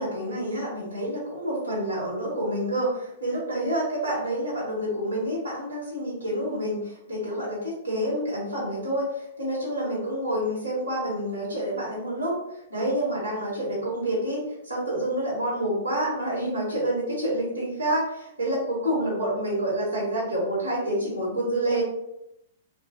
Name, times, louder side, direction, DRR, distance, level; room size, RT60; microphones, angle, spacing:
voice 1, 0.0-12.3 12.7-21.8, right 1 dB, 85° right, -6 dB, 1.2 m, -28 dB
2.5 x 2.4 x 2.4 m, 0.80 s
figure-of-eight pair, 105°, 0 cm